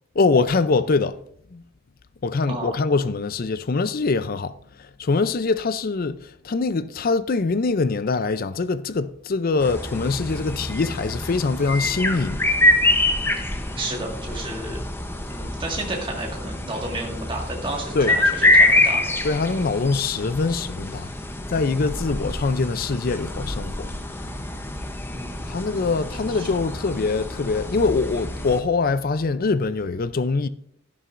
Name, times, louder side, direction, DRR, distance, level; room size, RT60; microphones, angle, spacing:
voice 1, 0.2-1.2 1.5-1.6 2.2-4.5 5.0-12.5 17.9-18.1 19.2-21.1 21.5-24.5 25.5-30.5, left 4 dB, 45° left, 0.5 m, -23 dB
sound 1, 9.6-28.6, left 1 dB, 10° left, 0.7 m, -25 dB
voice 2, 13.8-14.8 15.3-19.3 25.1-25.6 26.3-26.5, right 2 dB, 25° right, 1.8 m, -32 dB
12.0 x 11.0 x 2.5 m
head